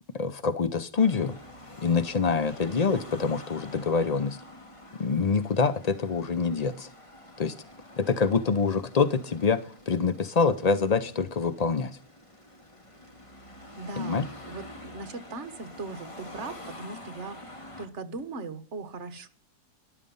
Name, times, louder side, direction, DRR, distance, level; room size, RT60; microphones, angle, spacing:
voice 1, 0.1-1.4 1.8-4.4 5.0-6.9 7.4-7.5 8.0-12.0 14.0-14.3, left 5 dB, 55° left, 0.4 m, -26 dB
Car passing by / Traffic noise roadway noise / Engine, 1.0-17.9, left 1 dB, 20° left, 2.0 m, -47 dB
voice 2, 13.8-19.3, right 4 dB, 45° right, 1.7 m, -39 dB
13.5 x 11.5 x 5.5 m
omnidirectional pair, 1.7 m